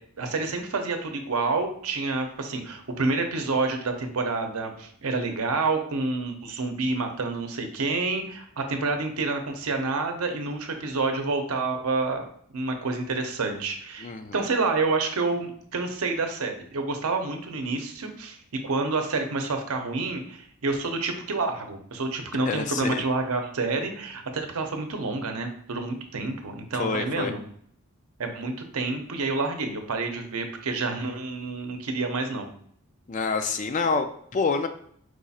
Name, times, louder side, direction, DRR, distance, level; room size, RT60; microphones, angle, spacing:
voice 1, 0.2-12.2 12.5-27.4 28.2-32.5, right 3 dB, 75° right, 5 dB, 0.7 m, -28 dB
voice 2, 14.0-14.4 22.5-23.0 26.8-27.3 33.1-34.7, left 4 dB, 35° left, 8 dB, 0.3 m, -27 dB
4.8 x 2.4 x 4.1 m, 0.62 s
head